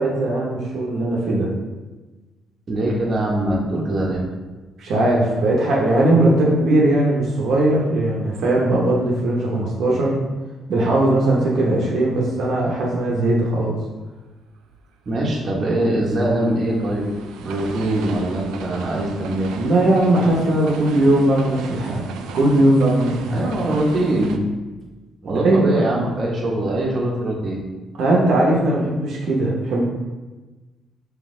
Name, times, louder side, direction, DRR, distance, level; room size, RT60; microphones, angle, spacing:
voice 1, 0.0-1.5 4.8-10.2 10.7-13.8 19.5-23.5 25.2-25.7 28.0-29.8, right 1 dB, 70° right, -3 dB, 0.8 m, -19 dB
voice 2, 2.7-4.2 15.1-17.1 17.4-19.5 23.3-24.4 25.2-27.6, right 1 dB, 45° right, -2 dB, 0.9 m, -22 dB
sound 1, 15.1-24.4, right 6 dB, 90° right, 0.3 m, -35 dB
4.1 x 2.9 x 3.6 m, 1.2 s
cardioid pair, 90°, 0 cm